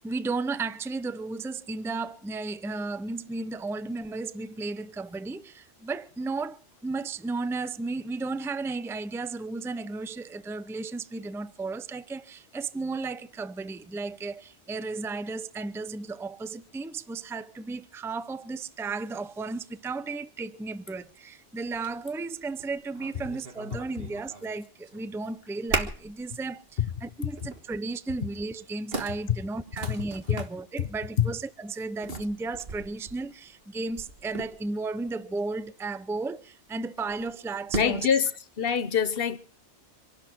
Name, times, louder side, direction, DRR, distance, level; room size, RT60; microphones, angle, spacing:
voice 1, 0.0-38.1, right 3 dB, 5° right, 0.4 m, -34 dB
sound 1, 21.0-21.1 21.7-21.9 22.4-24.6 24.8-25.3 25.7-26.2 26.6-26.8 27.3-27.7 28.4-28.5 28.9-30.5 32.0-34.9 37.1-38.2, right 4 dB, 55° right, 1.7 m, -37 dB
voice 2, 37.7-38.3 38.6-39.4, left 7 dB, 55° left, 1.1 m, -25 dB
25.5 x 12.0 x 4.5 m
omnidirectional pair, 1.2 m